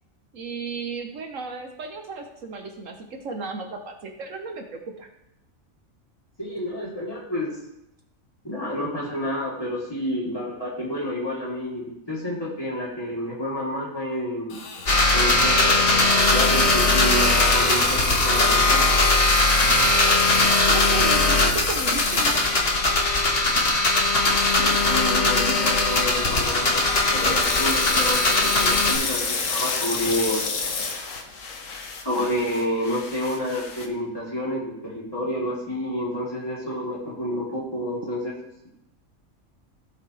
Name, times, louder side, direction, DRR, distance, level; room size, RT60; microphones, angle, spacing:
voice 1, 0.3-5.1 20.0-20.2 20.7-22.4, right 4 dB, 70° right, 4 dB, 1.4 m, -34 dB
voice 2, 6.4-7.5 8.4-14.6 15.1-15.8 16.1-19.0 24.1-26.8 27.1-30.5 32.0-38.3, equal, 15° left, -7 dB, 3.4 m, -29 dB
Water tap faucet / Sink (filling or washing), 14.5-22.9 23.4-23.5 24.2-24.5 26.1-31.0, left 4 dB, 85° left, 1.6 m, -31 dB
sound 1, 14.9-28.9, left 2 dB, 45° left, 1.7 m, -20 dB
sound 2, 21.7-33.9, left 4 dB, 65° left, 1.4 m, -36 dB
16.5 x 5.7 x 3.3 m, 0.84 s
omnidirectional pair, 1.4 m